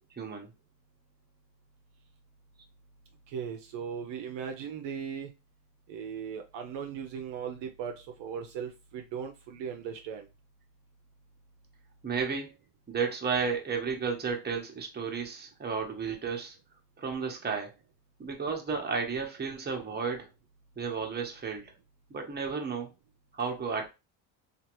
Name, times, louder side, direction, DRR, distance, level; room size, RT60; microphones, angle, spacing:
voice 1, 0.2-0.5 12.0-12.5 12.9-16.6 17.0-17.7 18.2-20.3 20.8-21.7 22.1-22.9 23.3-23.9, right 5 dB, 20° right, 2 dB, 1.0 m, -33 dB
voice 2, 3.3-5.3 5.9-10.2, right 7 dB, 60° right, 4 dB, 0.7 m, -38 dB
2.8 x 2.6 x 3.0 m, 0.27 s
supercardioid pair, 80°, 50 cm